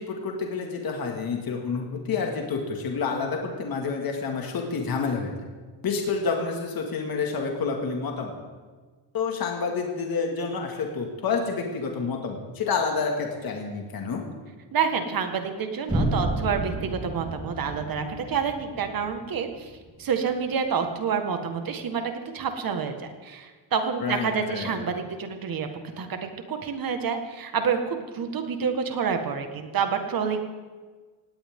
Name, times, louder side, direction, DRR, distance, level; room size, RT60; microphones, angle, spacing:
voice 1, 0.0-5.3 5.8-8.4 9.1-14.2 24.0-24.8, left 5 dB, 50° left, 1 dB, 2.3 m, -29 dB
voice 2, 14.7-19.7 20.0-25.7 26.0-26.2 26.5-30.4, right 6 dB, 45° right, 6 dB, 1.8 m, -28 dB
sound 1, 15.9-19.8, right 1 dB, 10° right, 4.0 m, -31 dB
18.5 x 17.5 x 3.8 m, 1.4 s
cardioid pair, 175°, 46 cm